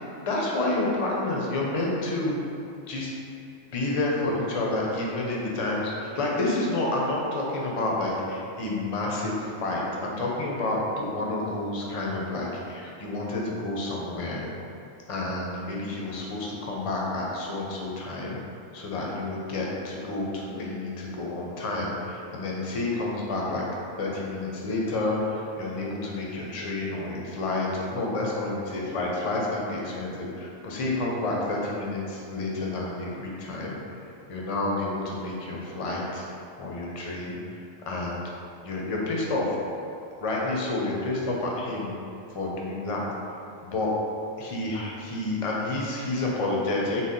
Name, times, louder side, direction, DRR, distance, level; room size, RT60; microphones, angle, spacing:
voice 1, 0.2-2.4 2.9-3.1 3.7-14.5 15.1-18.4 18.7-23.6 24.0-36.3 36.6-38.2 38.6-39.5 40.2-41.9 42.3-43.1 43.6-43.9 44.4-47.0, left 2 dB, 50° left, -3 dB, 0.4 m, -29 dB
3.9 x 2.0 x 3.7 m, 2.7 s
omnidirectional pair, 1.2 m